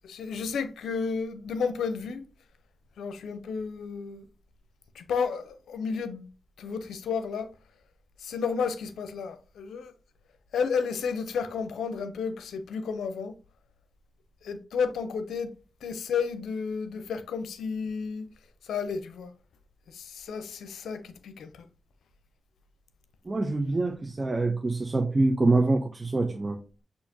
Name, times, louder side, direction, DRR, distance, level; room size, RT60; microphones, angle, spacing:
voice 1, 0.0-2.3 3.0-4.3 4.9-6.2 6.6-7.5 8.2-9.9 10.5-13.3 14.4-15.5 15.8-18.3 18.6-19.3 19.9-21.7, left 5 dB, 90° left, 0.6 m, -32 dB
voice 2, 23.3-26.6, right 2 dB, 40° right, 0.7 m, -25 dB
6.3 x 2.8 x 2.8 m
supercardioid pair, 45°, 0 cm